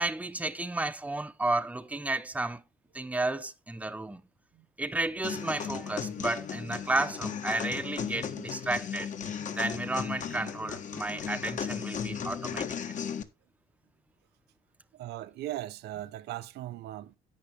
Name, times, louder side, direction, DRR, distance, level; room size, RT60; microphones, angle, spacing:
voice 1, 0.0-2.6 2.9-4.2 4.8-9.1 9.6-12.7, right 2 dB, 10° right, 0.9 m, -32 dB
sound 1, 5.2-13.2, left 7 dB, 50° left, 1.6 m, -36 dB
voice 2, 14.9-17.2, right 14 dB, 75° right, 0.9 m, -38 dB
11.0 x 8.3 x 3.1 m
cardioid pair, 110°, 17 cm